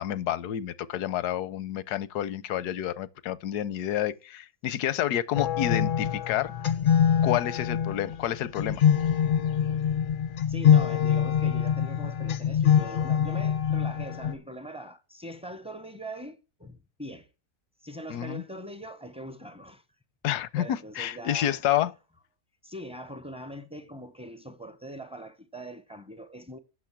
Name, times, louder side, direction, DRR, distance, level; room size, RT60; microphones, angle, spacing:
voice 1, 0.0-6.5 7.2-8.8 18.1-18.4 20.2-21.9, left 11 dB, 85° left, 1.2 m, -29 dB
sound 1, 5.3-14.3, left 8 dB, 55° left, 0.5 m, -24 dB
voice 2, 10.5-17.3 17.8-19.8 20.6-21.6 22.6-26.6, right 1 dB, 5° right, 0.5 m, -42 dB
8.3 x 6.3 x 7.3 m
omnidirectional pair, 1.6 m